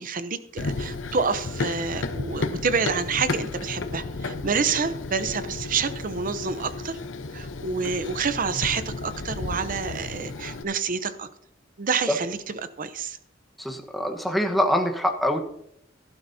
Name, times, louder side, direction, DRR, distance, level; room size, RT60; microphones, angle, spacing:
voice 1, 0.0-7.0 7.3-11.3 11.8-12.4 12.8-13.2, right 5 dB, 45° right, 12 dB, 0.7 m, -28 dB
Run, 0.6-10.6, left 3 dB, 70° left, 0.8 m, -33 dB
voice 2, 13.6-15.4, equal, ahead, 3 dB, 1.2 m, -24 dB
16.0 x 11.5 x 2.8 m, 0.73 s
head